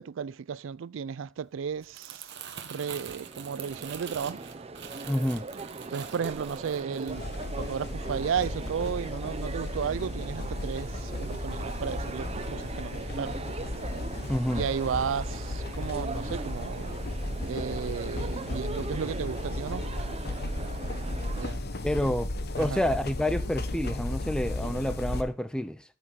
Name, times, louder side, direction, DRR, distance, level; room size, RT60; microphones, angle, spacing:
voice 1, 0.0-2.3 2.6-4.4 5.9-7.3 7.6-13.5 14.5-17.0 17.5-19.9 21.4-21.6 22.6-22.9, right 7 dB, 85° right, 0.4 m, -34 dB
Crumpling crinkling, 1.7-8.1 8.4-8.7, right 8 dB, 65° right, 1.3 m, -45 dB
sound 1, 2.7-21.5, right 3 dB, 30° right, 0.7 m, -40 dB
voice 2, 5.1-5.5 14.3-14.6 21.8-22.3 22.6-25.8, left 1 dB, 5° left, 0.6 m, -28 dB
sound 2, 7.1-25.2, left 1 dB, 55° left, 1.3 m, -35 dB
14.0 x 6.1 x 4.0 m
head